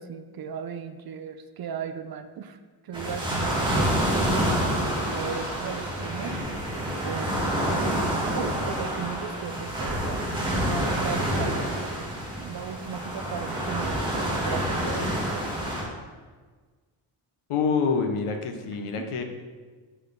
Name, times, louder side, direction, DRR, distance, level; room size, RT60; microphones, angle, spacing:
voice 1, 0.0-6.4 7.0-7.4 7.6-7.9 8.3-11.9 12.4-15.1 19.0-19.1, right 7 dB, 50° right, 9 dB, 0.4 m, -36 dB
sound 1, 2.9-15.8, equal, 10° right, 1.6 m, -28 dB
voice 2, 17.5-19.2, left 5 dB, 80° left, 5 dB, 0.9 m, -26 dB
6.1 x 5.5 x 3.9 m, 1.4 s
wide cardioid pair, 140°, 50 cm